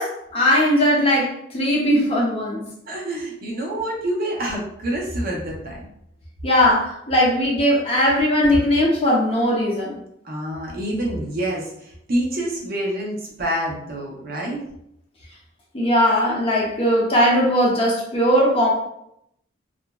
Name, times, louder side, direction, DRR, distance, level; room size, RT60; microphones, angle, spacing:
voice 1, 0.0-2.6 6.4-10.0 15.7-18.7, equal, 30° left, -3 dB, 0.6 m, -19 dB
voice 2, 2.9-5.8 10.2-14.7, right 1 dB, 50° right, -2 dB, 0.6 m, -27 dB
2.9 x 2.4 x 2.2 m, 0.75 s
head